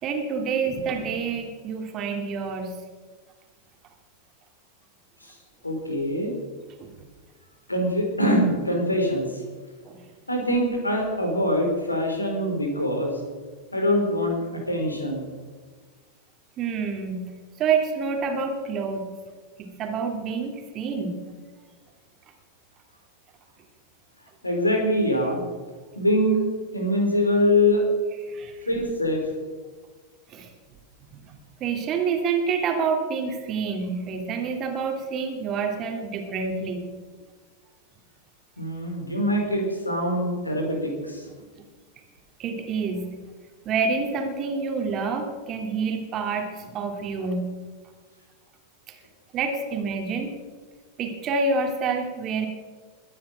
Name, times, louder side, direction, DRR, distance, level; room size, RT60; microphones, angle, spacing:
voice 1, 0.0-2.8 6.8-6.9 9.9-10.0 16.6-17.3 17.6-19.1 19.6-21.2 28.2-28.7 30.3-30.5 31.1-31.2 31.6-36.9 42.4-43.1 43.6-47.5 48.9-49.0 49.3-50.3 51.0-52.5, right 5 dB, 30° right, 4 dB, 2.7 m, -27 dB
voice 2, 5.6-6.3 7.7-9.3 10.3-13.2 13.7-15.2 24.4-25.4 26.0-26.4 26.7-27.8 28.7-29.2 38.6-41.2, left 1 dB, 85° left, 2 dB, 3.9 m, -24 dB
22.0 x 9.4 x 6.2 m, 1.5 s
figure-of-eight pair, 90°, 0 cm